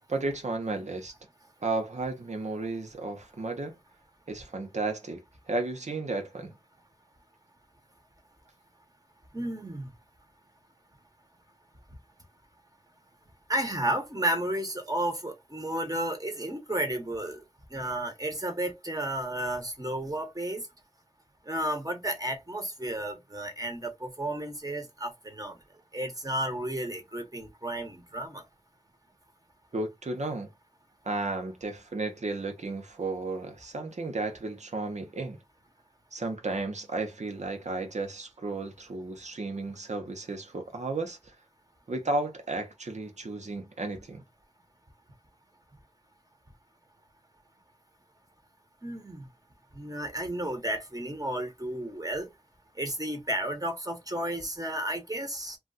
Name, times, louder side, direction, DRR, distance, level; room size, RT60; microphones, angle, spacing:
voice 1, 0.1-1.1 1.6-3.7 4.3-5.2 5.5-6.5 29.7-30.5 31.0-35.4 36.1-41.2 41.9-44.2, right 2 dB, 85° right, 0.8 m, -33 dB
voice 2, 9.3-9.9 13.5-17.4 17.7-20.6 21.5-25.5 25.9-28.4 48.8-49.2 49.7-52.3 52.8-55.6, right 1 dB, 30° right, 1.1 m, -32 dB
2.4 x 2.3 x 3.9 m
wide cardioid pair, 45°, 12 cm